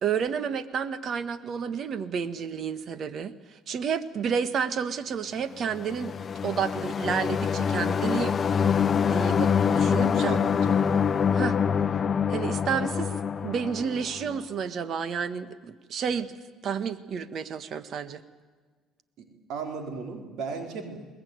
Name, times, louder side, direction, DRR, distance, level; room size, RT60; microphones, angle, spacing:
voice 1, 0.0-3.3 3.7-6.1 6.4-8.4 9.1-10.3 11.3-11.6 12.3-13.1 13.4-16.3 16.6-18.2, right 7 dB, 50° right, 12 dB, 1.5 m, -30 dB
sound 1, 5.7-14.4, left 7 dB, 35° left, 0.8 m, -25 dB
voice 2, 10.0-10.8 19.2-21.0, right 5 dB, 70° right, 4 dB, 4.1 m, -36 dB
22.5 x 20.5 x 9.5 m, 1.5 s
cardioid pair, 105°, 0 cm